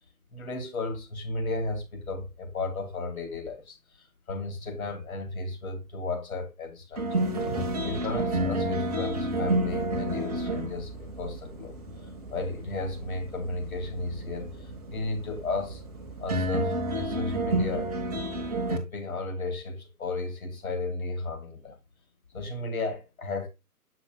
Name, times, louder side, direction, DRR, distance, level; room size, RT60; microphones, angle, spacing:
voice 1, 0.3-7.3 7.8-15.8 16.2-17.9 18.7-21.8 22.3-23.5, left 2 dB, 65° left, 2.3 m, -34 dB
sound 1, 6.9-18.8, right 1 dB, ahead, 0.6 m, -31 dB
8.0 x 6.0 x 2.3 m
figure-of-eight pair, 140°, 45 cm